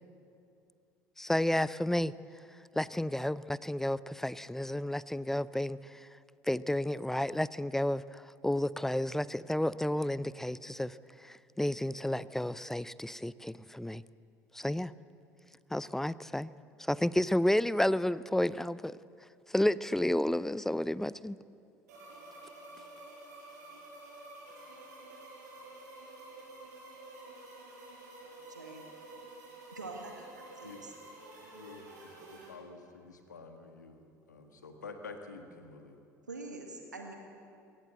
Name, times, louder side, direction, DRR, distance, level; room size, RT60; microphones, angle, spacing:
voice 1, 1.2-2.1 2.8-5.8 6.5-11.0 11.2-14.0 14.5-14.9 15.7-16.5 16.8-19.0 19.5-21.4, left 1 dB, 5° left, 19 dB, 0.5 m, -31 dB
sound 1, 21.9-32.5, right 2 dB, 70° right, 6.7 m, -50 dB
voice 2, 28.2-28.8 29.7-30.9 36.3-37.1, right 3 dB, 85° right, 2 dB, 2.0 m, -45 dB
voice 3, 31.4-36.0, left 4 dB, 80° left, 6 dB, 1.5 m, -49 dB
22.5 x 18.5 x 8.0 m, 2.6 s
figure-of-eight pair, 65°, 9 cm